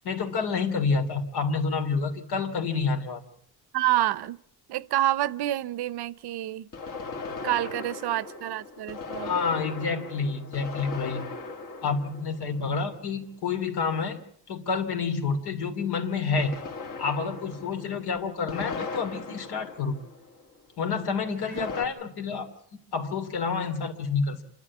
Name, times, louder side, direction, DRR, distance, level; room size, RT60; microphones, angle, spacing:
voice 1, 0.0-3.2 9.2-11.3 11.8-14.2 14.5-16.5 17.0-20.0 20.8-22.5 22.9-24.4, left 5 dB, 75° left, 2.8 m, -28 dB
voice 2, 3.7-4.4 4.7-6.7 7.4-9.3 21.5-21.7, right 14 dB, 80° right, 0.8 m, -28 dB
sound 1, 6.7-13.2 16.4-20.6 21.6-21.8, left 4 dB, 55° left, 2.3 m, -38 dB
28.0 x 12.0 x 8.5 m
wide cardioid pair, 175°, 39 cm